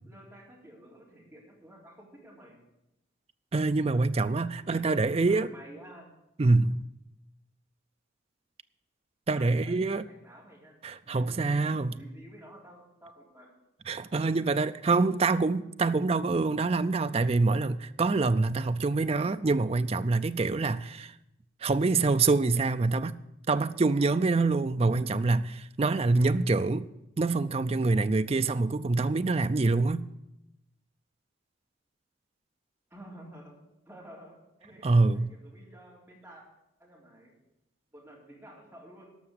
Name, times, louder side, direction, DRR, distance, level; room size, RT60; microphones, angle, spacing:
voice 1, 0.1-2.6 4.6-6.1 9.3-10.8 11.0-13.5 32.9-33.6 33.9-36.4 36.8-37.3 37.9-39.1, right 1 dB, 10° right, 3.8 m, -51 dB
voice 2, 3.5-5.5 6.4-6.8 9.3-10.1 10.8-12.0 13.9-21.1 21.6-23.2 23.5-26.9 27.2-30.1 34.8-35.3, right 3 dB, 30° right, 0.4 m, -25 dB
13.0 x 6.0 x 9.7 m
head